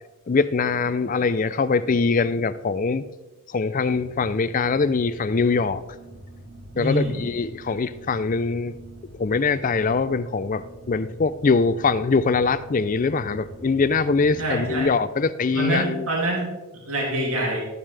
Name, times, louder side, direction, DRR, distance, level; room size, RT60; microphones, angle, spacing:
voice 1, 0.3-3.1 3.5-5.8 6.8-8.7 9.2-16.1, left 4 dB, 35° left, 0.4 m, -23 dB
sound 1, 3.9-14.9, right 1 dB, 90° right, 4.2 m, -44 dB
voice 2, 6.7-7.2 14.4-14.9 15.5-17.6, right 1 dB, 75° right, 2.6 m, -26 dB
13.5 x 8.9 x 3.3 m
head